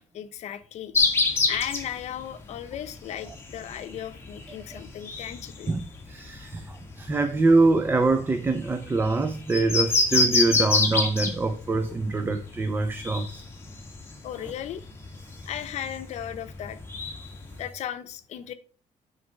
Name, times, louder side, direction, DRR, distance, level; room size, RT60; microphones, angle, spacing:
voice 1, 0.1-1.0 1.5-5.9 6.4-6.6 14.2-14.8 15.5-16.8 17.6-18.5, left 10 dB, 60° left, 0.8 m, -36 dB
sound 1, 0.9-17.7, left 3 dB, 20° left, 1.5 m, -29 dB
voice 2, 5.7-13.4, right 3 dB, 15° right, 0.5 m, -24 dB
9.4 x 4.0 x 5.3 m
cardioid pair, 165°, 13 cm